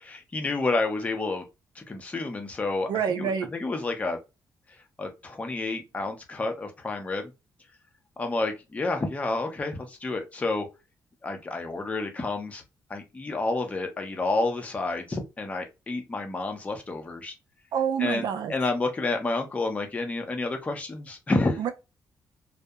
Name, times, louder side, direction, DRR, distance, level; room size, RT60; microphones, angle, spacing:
voice 1, 0.0-1.5 1.8-2.9 3.2-4.2 5.0-7.3 8.2-10.7 11.2-12.6 12.9-17.3 18.0-21.6, left 3 dB, 20° left, 0.5 m, -29 dB
voice 2, 2.9-3.5 17.7-18.5 21.6-21.7, right 8 dB, 75° right, 0.5 m, -27 dB
2.7 x 2.0 x 2.3 m
wide cardioid pair, 160°, 7 cm